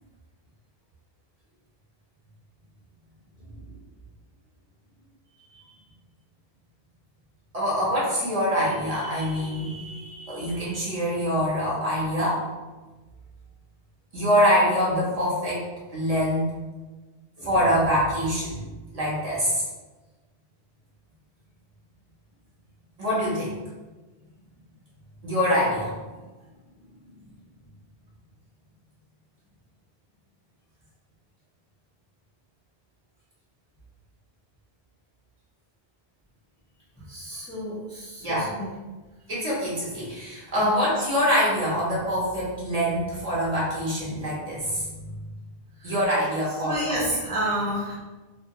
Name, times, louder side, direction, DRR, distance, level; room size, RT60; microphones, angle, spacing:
voice 1, 7.5-12.4 14.1-15.6 15.9-16.5 17.4-18.6 18.9-19.6 23.0-23.5 25.2-25.9 38.2-38.5 39.3-45.1 45.8-47.0, equal, 40° right, -7 dB, 0.7 m, -25 dB
voice 2, 37.1-38.7 40.6-40.7 45.8-46.0 46.6-47.9, equal, 10° left, -8 dB, 0.5 m, -30 dB
2.3 x 2.2 x 2.8 m, 1.2 s
omnidirectional pair, 1.1 m